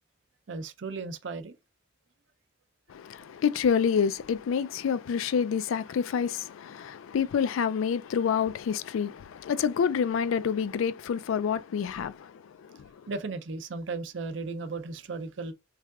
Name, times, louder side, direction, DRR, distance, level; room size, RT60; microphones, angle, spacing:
voice 1, 0.5-1.6 13.1-15.5, right 3 dB, 65° right, 0.5 m, -35 dB
voice 2, 2.9-12.9, left 7 dB, 90° left, 0.3 m, -28 dB
3.6 x 3.3 x 2.3 m
head